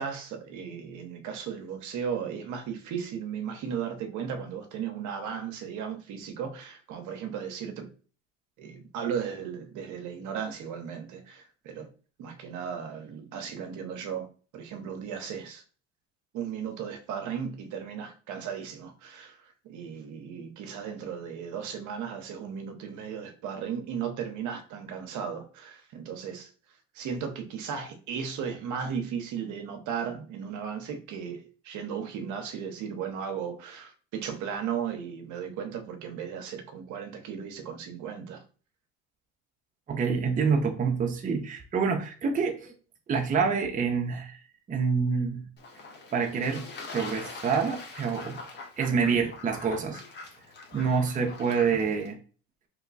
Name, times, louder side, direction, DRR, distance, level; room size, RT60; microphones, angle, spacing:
voice 1, 0.0-7.9 8.6-11.9 12.2-14.3 14.5-15.6 16.3-26.5 26.9-38.4, right 7 dB, 55° right, 0.8 m, -36 dB
voice 2, 39.9-42.7 43.1-44.4 44.7-45.5 46.1-46.6 46.9-48.4 48.8-50.0 50.7-52.2, right 5 dB, 20° right, 0.6 m, -27 dB
Fowl / Bird / Water, 45.6-52.1, left 3 dB, 30° left, 1.0 m, -43 dB
3.0 x 2.2 x 3.9 m
supercardioid pair, 90°, 36 cm